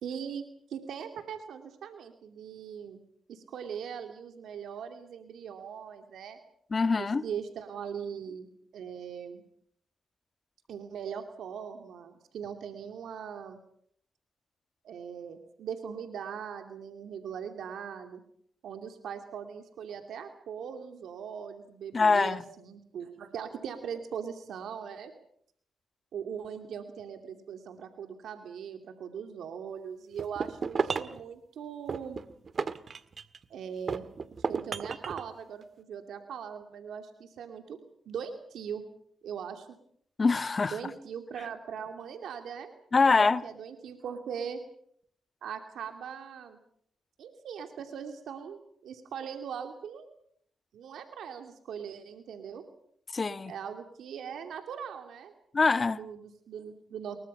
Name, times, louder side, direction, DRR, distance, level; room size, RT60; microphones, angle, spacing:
voice 1, 0.0-3.0 3.3-6.4 7.0-8.5 8.7-9.4 10.7-13.6 14.8-18.2 18.6-25.1 26.1-32.2 33.5-34.0 34.5-37.8 38.1-38.8 39.2-39.8 40.6-42.7 43.0-44.6 45.4-46.6 47.2-50.1 50.7-52.6 53.5-55.3 55.9-57.2, right 7 dB, 75° right, 2.7 m, -40 dB
voice 2, 6.7-7.2 21.9-22.4 40.2-40.8 42.9-43.4 53.1-53.5 55.5-56.0, left 4 dB, 40° left, 1.5 m, -24 dB
sound 1, 30.2-31.2 31.9-33.4 33.9-35.3, right 5 dB, 50° right, 1.7 m, -33 dB
29.0 x 22.5 x 5.6 m
supercardioid pair, 60°, 0 cm